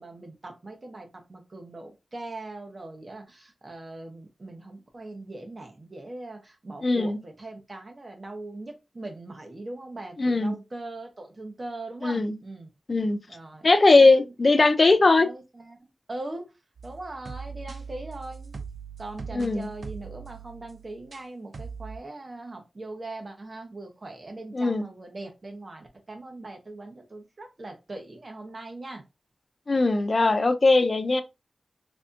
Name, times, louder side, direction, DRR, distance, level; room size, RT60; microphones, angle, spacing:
voice 1, 0.0-12.7 13.3-13.7 13.9-14.3 15.0-16.5 16.8-18.5 19.0-29.0, right 2 dB, 45° right, 0.9 m, -40 dB
voice 2, 6.8-7.2 10.2-10.5 12.0-12.3 12.9-13.2 13.6-15.3 19.3-19.7 24.5-24.9 29.7-31.2, left 3 dB, 50° left, 0.4 m, -20 dB
sound 1, 16.8-21.3 21.5-22.0, right 5 dB, 70° right, 0.5 m, -41 dB
3.3 x 2.6 x 2.5 m
wide cardioid pair, 70°, 0 cm